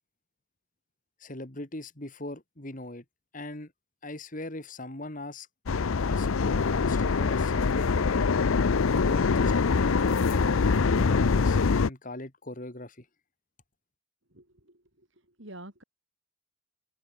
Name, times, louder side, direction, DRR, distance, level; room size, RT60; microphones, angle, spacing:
voice 1, 1.2-3.0 3.3-3.7 4.0-5.5 6.1-8.3 8.9-13.1, left 1 dB, 40° left, 2.3 m, -40 dB
sound 1, 5.7-11.9, left 4 dB, 80° left, 0.6 m, -24 dB
voice 2, 14.3-15.8, right 1 dB, 60° right, 7.6 m, -48 dB
open air
head